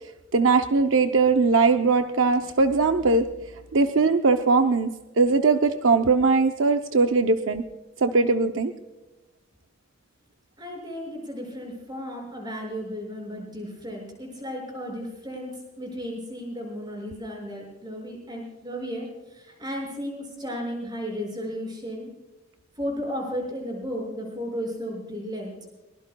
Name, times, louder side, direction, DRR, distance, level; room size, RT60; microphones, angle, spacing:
voice 1, 0.3-3.2 3.7-4.9 5.2-7.6 8.0-8.7, right 4 dB, 60° right, 6 dB, 0.6 m, -20 dB
voice 2, 10.6-22.1 22.8-25.6, equal, 20° right, 0 dB, 5.9 m, -34 dB
23.0 x 20.5 x 2.3 m, 1.1 s
head